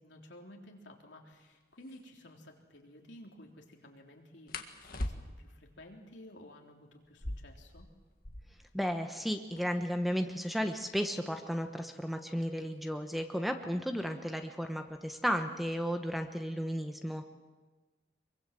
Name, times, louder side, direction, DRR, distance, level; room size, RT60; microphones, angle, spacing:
voice 1, 0.0-7.9, left 1 dB, 75° left, 1 dB, 3.6 m, -54 dB
sound 1, 1.8-2.0 4.5-5.6 7.0-8.7 9.0-9.1 9.3-9.9 10.5-13.1 14.1-14.4 14.8-15.3 15.6-16.3, left 1 dB, 50° left, 1.7 m, -43 dB
voice 2, 8.7-17.3, equal, ahead, 5 dB, 1.1 m, -34 dB
24.5 x 23.5 x 7.7 m, 1.3 s
head